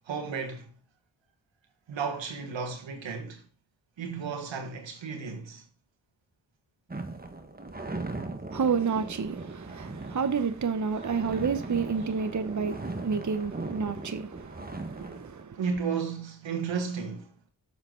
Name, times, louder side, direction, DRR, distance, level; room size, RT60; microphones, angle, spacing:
voice 1, 0.1-0.7 1.9-3.4 4.0-5.6 15.6-17.3, right 5 dB, 85° right, 1.5 m, -33 dB
sound 1, 6.9-15.4, right 2 dB, 20° right, 1.4 m, -39 dB
voice 2, 8.5-15.6, right 5 dB, 40° right, 0.9 m, -30 dB
7.1 x 6.9 x 3.8 m
cardioid pair, 45°, 44 cm